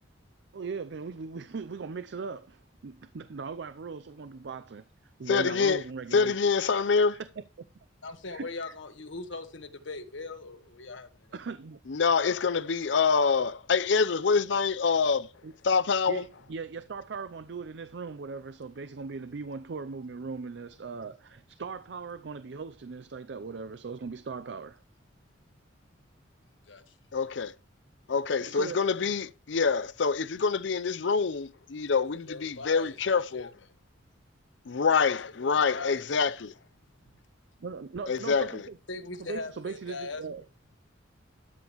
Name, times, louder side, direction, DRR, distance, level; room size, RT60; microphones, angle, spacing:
voice 1, 0.5-4.8 5.2-6.3 7.1-7.4 8.3-8.5 11.3-11.8 15.4-15.5 16.1-24.8 28.4-28.8 37.6-38.8 39.3-40.4, right 4 dB, 65° right, 0.5 m, -39 dB
voice 2, 5.3-5.8 6.1-7.2 11.9-15.3 15.6-16.2 27.1-27.5 28.1-33.5 34.7-36.5 38.1-38.6, left 5 dB, 70° left, 0.6 m, -26 dB
voice 3, 8.0-11.4 15.9-16.0 26.6-27.0 32.2-33.5 35.2-36.1 38.9-40.2, left 3 dB, 90° left, 1.4 m, -40 dB
12.5 x 7.2 x 3.1 m
head